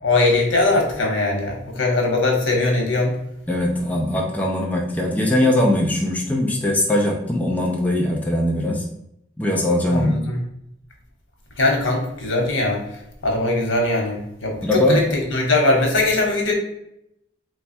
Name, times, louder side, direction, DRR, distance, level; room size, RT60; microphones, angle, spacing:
voice 1, 0.0-3.1 9.8-10.4 11.6-12.8 13.2-16.5, left 2 dB, 85° left, 0 dB, 1.0 m, -20 dB
voice 2, 3.5-8.8 9.4-10.2 14.6-15.0, left 1 dB, 10° left, -1 dB, 0.4 m, -20 dB
3.2 x 2.3 x 4.2 m, 0.79 s
head